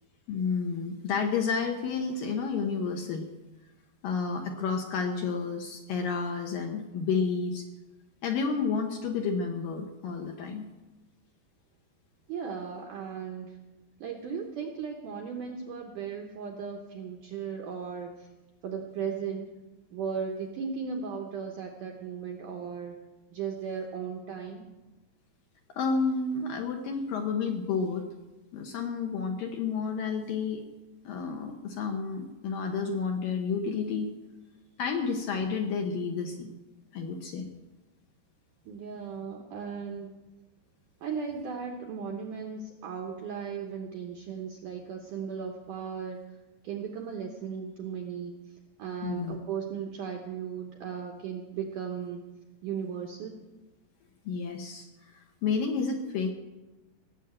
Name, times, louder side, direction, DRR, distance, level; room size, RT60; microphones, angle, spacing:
voice 1, 0.3-3.3 4.0-7.6 8.2-10.7 25.8-28.0 28.5-30.6 31.1-34.1 34.8-36.5 36.9-37.5 49.0-49.4 54.3-54.9 55.1-56.3, left 5 dB, 70° left, 3 dB, 2.2 m, -30 dB
voice 2, 12.3-13.6 14.0-18.3 18.6-19.5 19.9-23.0 23.3-24.7 38.7-40.1 41.0-46.2 46.6-48.4 48.8-52.2 52.6-53.4, right 6 dB, 75° right, 3 dB, 1.9 m, -36 dB
17.5 x 7.4 x 8.6 m, 1.1 s
omnidirectional pair, 5.1 m